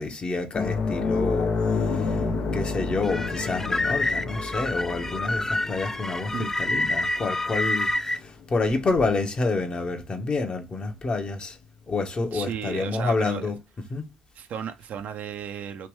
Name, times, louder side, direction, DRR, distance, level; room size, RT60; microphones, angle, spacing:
voice 1, 0.0-2.2 2.5-11.6 11.9-13.5 13.9-14.1, left 3 dB, 35° left, 1.1 m, -28 dB
sound 1, 0.5-9.5 9.8-10.0 12.1-12.2, left 4 dB, 55° left, 0.8 m, -30 dB
sound 2, 3.0-8.2, left 2 dB, 15° left, 0.4 m, -28 dB
voice 2, 12.3-13.5 14.3-15.9, right 8 dB, 55° right, 0.7 m, -34 dB
3.3 x 3.0 x 3.1 m
hypercardioid pair, 55°, 3 cm